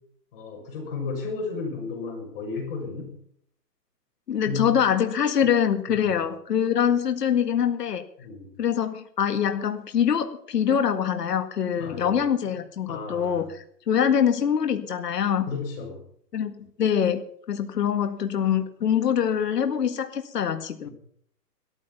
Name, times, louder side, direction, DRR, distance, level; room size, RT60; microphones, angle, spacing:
voice 1, 0.3-3.1 4.4-4.7 5.9-6.0 8.2-8.5 11.8-12.2 12.9-13.5 15.5-16.0 20.9-21.0, left 4 dB, 35° left, 0 dB, 7.2 m, -33 dB
voice 2, 4.3-8.0 8.6-15.4 16.3-16.5 16.8-20.9, left 8 dB, 70° left, 7 dB, 1.9 m, -24 dB
18.0 x 13.5 x 5.7 m, 0.64 s
hypercardioid pair, 165°, 50 cm